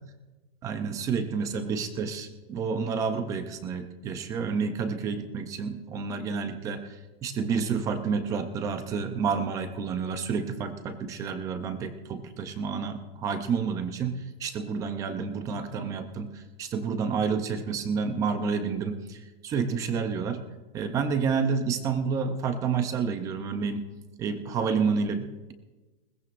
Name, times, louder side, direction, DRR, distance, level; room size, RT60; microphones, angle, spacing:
voice 1, 0.6-20.4 20.7-23.8 24.2-25.5, right 5 dB, 10° right, 9 dB, 0.4 m, -29 dB
21.0 x 19.0 x 2.5 m, 1.2 s
supercardioid pair, 170°, 32 cm